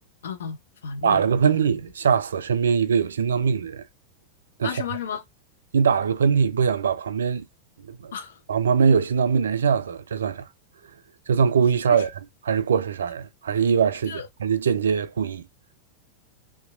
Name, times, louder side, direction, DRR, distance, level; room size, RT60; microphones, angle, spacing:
voice 1, 0.2-1.7 4.6-5.2 8.1-8.4 11.9-12.0 14.1-14.3, left 7 dB, 60° left, 0.5 m, -34 dB
voice 2, 1.0-3.8 4.6-4.8 5.7-7.4 7.8-8.1 8.5-10.5 11.3-12.1 12.5-15.5, right 6 dB, 65° right, 0.3 m, -22 dB
2.8 x 2.2 x 2.4 m
figure-of-eight pair, 90°, 0 cm